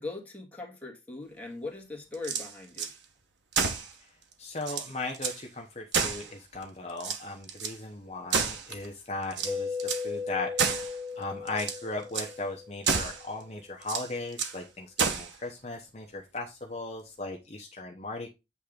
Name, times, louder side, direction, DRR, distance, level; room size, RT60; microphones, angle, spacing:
voice 1, 0.0-2.9, left 3 dB, 10° left, 1.8 m, -40 dB
sound 1, 2.1-2.9 3.5-3.9 4.3-4.4 4.6-5.4 5.9-6.6 7.0-7.8 8.3-8.9 9.3-10.1 10.6-11.0 11.5-11.8 12.1-12.3 12.8-13.2 13.8-14.6 15.0-15.3, right 5 dB, 85° right, 1.2 m, -30 dB
voice 2, 4.4-9.8 10.0-18.3, left 2 dB, 35° left, 0.9 m, -37 dB
Mallet percussion, 9.5-13.2, left 5 dB, 15° right, 1.0 m, -37 dB
8.4 x 3.5 x 5.0 m
head